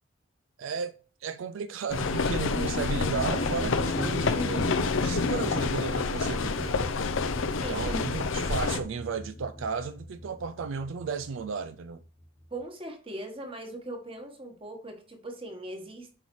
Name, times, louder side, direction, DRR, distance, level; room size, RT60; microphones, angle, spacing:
voice 1, 0.6-0.9 1.2-6.8 7.6-12.0, right 5 dB, 70° right, 0.4 m, -34 dB
sound 1, 1.9-8.8, left 4 dB, 70° left, 0.6 m, -28 dB
sound 2, 2.5-12.6, equal, 30° left, 0.9 m, -38 dB
voice 2, 12.5-16.1, right 1 dB, 25° right, 1.4 m, -40 dB
7.9 x 5.5 x 3.1 m
head